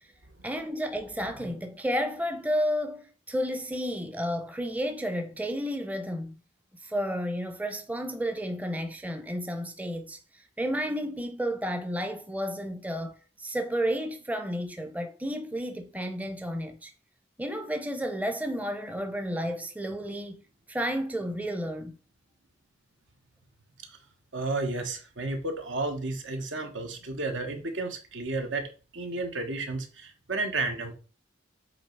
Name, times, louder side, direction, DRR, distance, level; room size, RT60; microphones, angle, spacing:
voice 1, 0.4-6.3 6.8-16.9 17.4-20.4 20.7-22.0, equal, 10° right, 0.6 m, -32 dB
voice 2, 24.3-31.0, right 2 dB, 80° right, 1.4 m, -32 dB
7.7 x 3.1 x 4.6 m
head